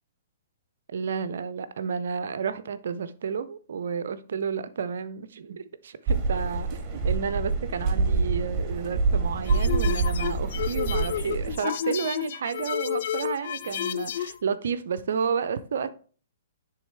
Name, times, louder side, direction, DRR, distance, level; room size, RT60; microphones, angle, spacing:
voice 1, 0.9-15.9, right 6 dB, 60° right, 0.5 m, -31 dB
sound 1, 6.1-11.5, right 4 dB, 25° right, 1.3 m, -26 dB
sound 2, 9.5-14.4, left 10 dB, 50° left, 0.3 m, -31 dB
10.0 x 3.5 x 3.4 m
figure-of-eight pair, 115°, 0 cm